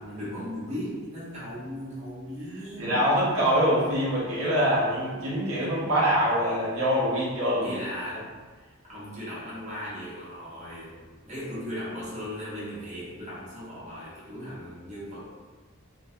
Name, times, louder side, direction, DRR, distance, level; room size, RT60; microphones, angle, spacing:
voice 1, 0.0-3.1 7.6-8.3 8.5-15.5, equal, 35° right, -9 dB, 0.8 m, -37 dB
voice 2, 2.8-7.8, equal, 75° right, -7 dB, 0.6 m, -24 dB
2.2 x 2.2 x 2.6 m, 1.4 s
head